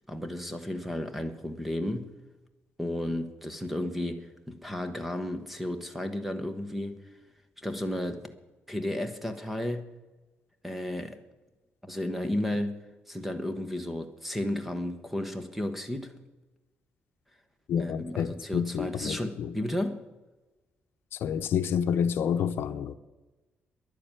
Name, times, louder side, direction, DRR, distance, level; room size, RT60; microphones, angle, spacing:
voice 1, 0.1-2.1 2.8-7.0 7.6-8.3 8.7-9.9 10.6-11.2 11.8-12.8 13.1-16.2 17.8-20.0, left 1 dB, 5° right, 1.0 m, -33 dB
voice 2, 17.7-19.5 21.1-22.9, left 8 dB, 70° left, 0.7 m, -29 dB
11.0 x 9.9 x 8.9 m
cardioid pair, 170°, 4 cm